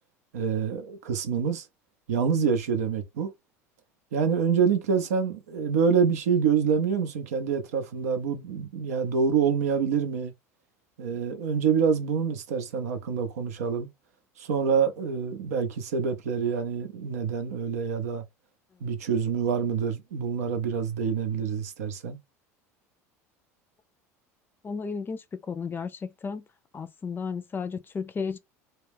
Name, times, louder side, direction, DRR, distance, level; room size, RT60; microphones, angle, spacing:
voice 1, 0.3-1.7 2.1-3.3 4.1-10.3 11.0-13.9 14.4-18.2 18.8-22.2, right 6 dB, 85° right, 0.5 m, -26 dB
voice 2, 24.6-26.4 26.7-28.4, left 5 dB, 25° left, 0.4 m, -33 dB
2.2 x 2.1 x 3.3 m
hypercardioid pair, 80°, 8 cm